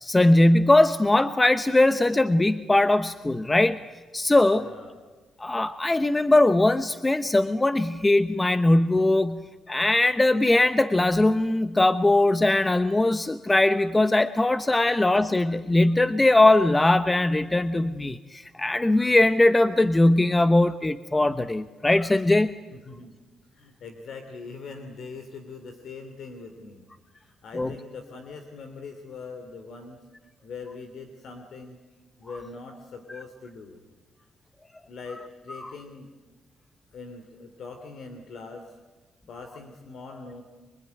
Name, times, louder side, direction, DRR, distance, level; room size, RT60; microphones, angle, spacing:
voice 1, 0.0-3.8 4.1-4.7 5.4-22.5 27.5-27.7 35.6-35.7, left 2 dB, 15° left, 12 dB, 0.9 m, -20 dB
voice 2, 4.6-4.9 22.7-23.2 23.5-26.8 27.1-30.0 30.4-31.8 32.2-33.8 34.9-36.1 36.9-38.8 39.3-40.4, left 4 dB, 65° left, 6 dB, 2.8 m, -42 dB
24.5 x 24.0 x 9.5 m, 1.3 s
cardioid pair, 90°, 0 cm